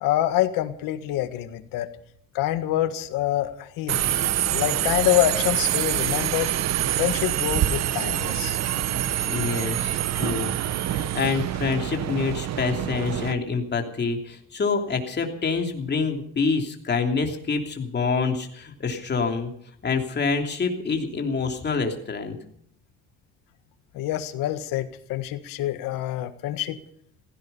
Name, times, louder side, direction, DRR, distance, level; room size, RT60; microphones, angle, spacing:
voice 1, 0.0-1.9 2.3-4.1 4.5-6.5 6.9-8.6 23.9-26.8, left 14 dB, 85° left, 9 dB, 1.7 m, -26 dB
Subway metro underground, 3.9-13.3, right 12 dB, 50° right, 0.9 m, -26 dB
voice 2, 9.2-10.5 10.9-19.5 19.8-22.4, left 4 dB, 30° left, 3 dB, 3.0 m, -26 dB
16.0 x 16.0 x 5.6 m, 0.67 s
cardioid pair, 120°, 33 cm